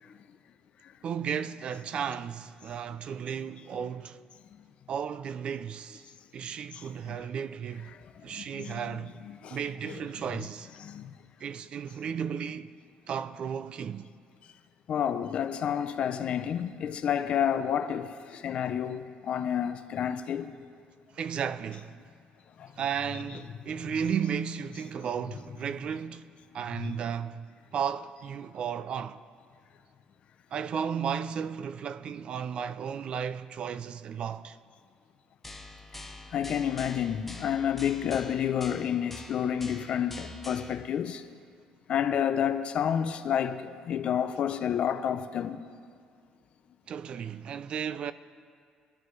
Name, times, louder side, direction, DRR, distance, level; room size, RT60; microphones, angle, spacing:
voice 1, 1.0-4.2 4.9-6.0 6.3-7.9 8.2-9.1 9.5-10.7 11.4-12.7 13.1-14.1 21.1-21.9 22.8-26.3 26.5-29.2 30.5-34.6 44.3-44.4 46.9-48.1, right 7 dB, 40° right, 0.3 m, -34 dB
voice 2, 6.7-7.2 8.3-9.0 9.2-9.6 9.9-10.0 10.8-11.1 14.9-20.5 22.6-22.7 26.8-27.0 36.3-41.2 41.9-45.6, left 9 dB, 45° left, 0.5 m, -30 dB
sound 1, 35.4-40.8, left 2 dB, 5° left, 0.6 m, -45 dB
21.5 x 11.5 x 3.2 m
cardioid pair, 165°, 3 cm